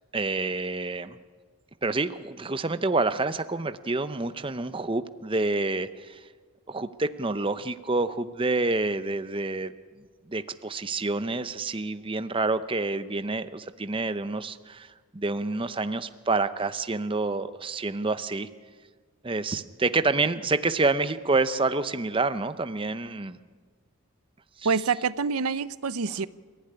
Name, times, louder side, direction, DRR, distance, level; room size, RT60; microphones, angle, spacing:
voice 1, 0.1-1.2 1.8-6.2 6.7-9.7 10.3-18.5 19.2-23.4 24.6-24.7, right 3 dB, 25° right, 11 dB, 0.6 m, -28 dB
voice 2, 24.6-26.3, right 5 dB, 80° right, 16 dB, 0.7 m, -26 dB
29.0 x 15.0 x 9.9 m, 1.5 s
head